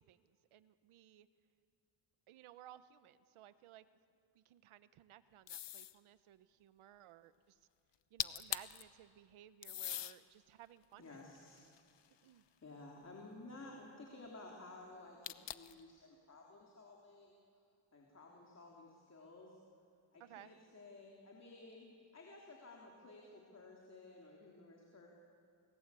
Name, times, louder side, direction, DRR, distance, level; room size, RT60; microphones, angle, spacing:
voice 1, 0.1-1.3 2.3-3.8 4.3-7.6 8.1-11.2 12.2-12.4 20.2-20.5, right 12 dB, 85° right, 13 dB, 1.1 m, -59 dB
sound 1, 5.5-6.0 7.9-8.0 8.2-8.8 9.6-10.2 10.8-12.3 15.2-15.8, left 11 dB, 60° left, 1.0 m, -42 dB
voice 2, 11.0-11.6 12.2-17.4 17.9-19.6 20.1-25.1, left 2 dB, 30° left, -1 dB, 3.4 m, -55 dB
29.5 x 20.0 x 8.5 m, 2.3 s
cardioid pair, 115°, 48 cm